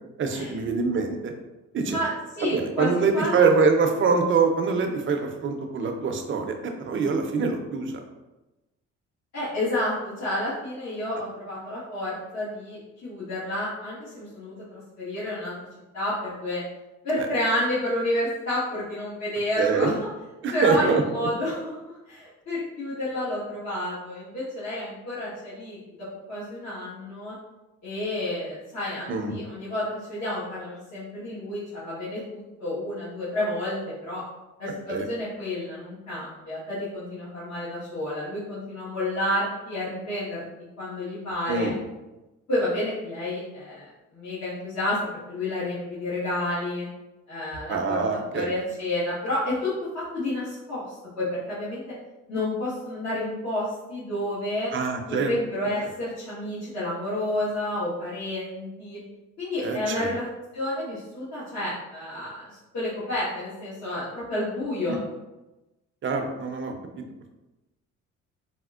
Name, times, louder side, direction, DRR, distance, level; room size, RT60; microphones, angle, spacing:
voice 1, 0.2-1.3 1.7-2.0 2.4-6.5 6.8-8.0 19.6-19.9 20.4-21.3 29.1-29.4 34.9-35.0 41.5-41.8 47.7-48.5 54.7-55.3 59.6-60.1 64.9-65.0 66.0-67.0, right 4 dB, 40° right, 4 dB, 0.5 m, -24 dB
voice 2, 1.9-3.3 9.3-14.5 15.0-15.6 15.9-16.6 17.0-20.1 20.5-21.6 21.9-25.8 26.3-27.3 27.8-34.2 34.6-40.4 40.8-41.7 42.5-45.0 45.3-46.9 47.3-48.0 48.3-49.7 50.1-50.8 51.1-51.8 52.3-54.7 55.1-59.0 59.4-60.2 60.5-62.5 62.7-65.0, left 1 dB, 65° left, -12 dB, 1.4 m, -30 dB
4.2 x 2.1 x 2.4 m, 1.0 s
cardioid pair, 90°, 30 cm